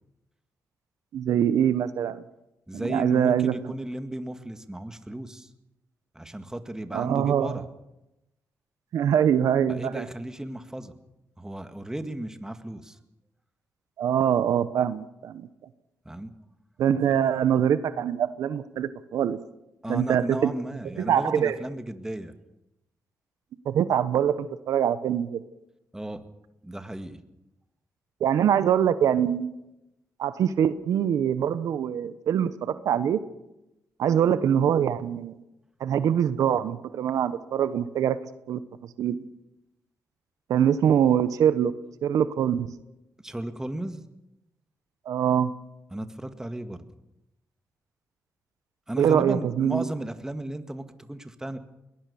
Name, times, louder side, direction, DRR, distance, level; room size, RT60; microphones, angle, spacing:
voice 1, 1.1-2.2 2.7-3.5 6.9-7.6 8.9-10.1 14.0-15.5 16.8-19.4 19.9-20.5 21.0-21.6 23.6-25.4 28.2-29.5 30.2-33.2 34.0-35.4 35.8-38.2 38.5-38.6 39.0-39.2 40.5-41.7 42.0-42.7 45.1-45.5 49.0-49.9, right 9 dB, 80° right, 13 dB, 1.1 m, -24 dB
voice 2, 2.7-5.5 6.1-7.6 9.7-10.9 11.4-13.0 16.1-16.3 19.8-22.3 25.9-26.3 26.6-27.2 43.2-44.0 45.9-46.9 48.9-51.6, right 1 dB, 10° right, 8 dB, 2.0 m, -34 dB
22.0 x 19.0 x 7.0 m, 0.91 s
cardioid pair, 80°, 6 cm